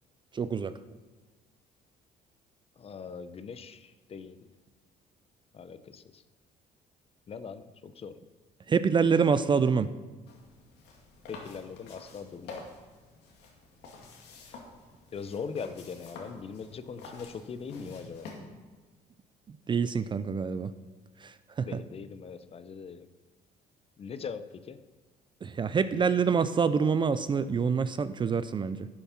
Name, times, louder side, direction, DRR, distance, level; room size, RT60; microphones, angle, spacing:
voice 1, 0.3-0.7 8.7-9.9 19.5-20.7 21.2-21.8 25.4-28.9, right 6 dB, 30° right, 13 dB, 0.4 m, -26 dB
voice 2, 2.8-4.4 5.5-6.2 7.3-8.1 11.3-12.6 14.4-14.6 15.1-18.3 21.6-23.1 24.0-24.8, left 5 dB, 35° left, 13 dB, 0.7 m, -41 dB
sound 1, 10.3-18.4, left 3 dB, 80° left, 2.3 m, -49 dB
12.0 x 7.1 x 5.8 m, 1.3 s
cardioid pair, 110°, 17 cm